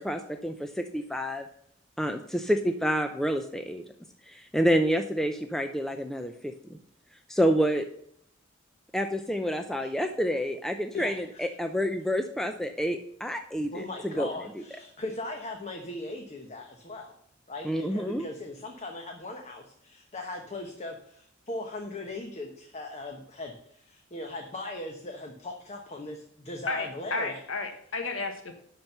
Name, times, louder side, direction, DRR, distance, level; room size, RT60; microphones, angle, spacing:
voice 1, 0.0-1.4 2.0-3.8 4.3-6.5 7.3-7.8 8.9-14.3 17.6-18.3, equal, ahead, 6 dB, 0.5 m, -28 dB
voice 2, 10.9-11.4 13.7-17.1 17.5-27.4, left 2 dB, 35° left, 3 dB, 1.1 m, -39 dB
voice 3, 26.7-28.6, left 3 dB, 80° left, 4 dB, 1.2 m, -33 dB
11.0 x 4.5 x 6.7 m, 0.67 s
head